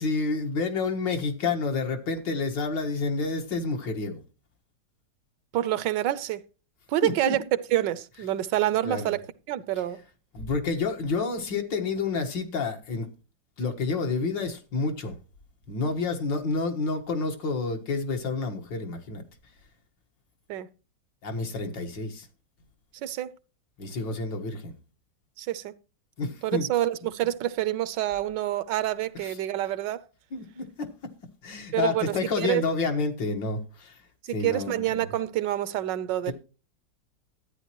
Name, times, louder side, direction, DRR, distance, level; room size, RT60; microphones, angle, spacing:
voice 1, 0.0-4.2 7.0-7.4 8.8-9.1 10.3-13.1 13.6-15.2 15.7-19.2 21.2-22.3 23.8-24.7 26.2-26.7 29.2-29.4 30.3-30.9 31.4-34.0 34.3-34.9 36.3-36.4, left 4 dB, 85° left, 2.3 m, -29 dB
voice 2, 5.5-6.4 6.9-9.2 9.5-10.0 20.5-20.7 23.0-23.3 25.4-25.7 26.4-30.1 31.7-32.6 34.2-36.3, right 13 dB, 80° right, 1.3 m, -27 dB
13.0 x 9.4 x 3.0 m
omnidirectional pair, 1.9 m